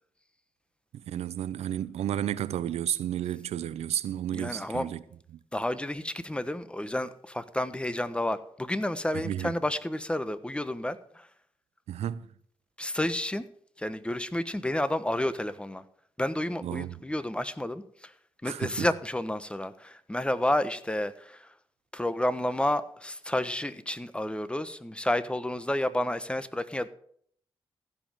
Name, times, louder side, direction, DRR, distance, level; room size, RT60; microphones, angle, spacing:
voice 1, 1.0-5.0 5.3-5.4 9.1-9.5 11.9-12.3 16.6-17.0 18.4-18.9, right 11 dB, 90° right, 0.6 m, -32 dB
voice 2, 4.3-4.9 5.5-11.3 12.8-13.5 13.8-15.8 16.2-18.1 18.4-21.5 21.9-26.9, left 1 dB, 10° left, 1.1 m, -30 dB
15.0 x 5.3 x 7.4 m
cardioid pair, 60°, 11 cm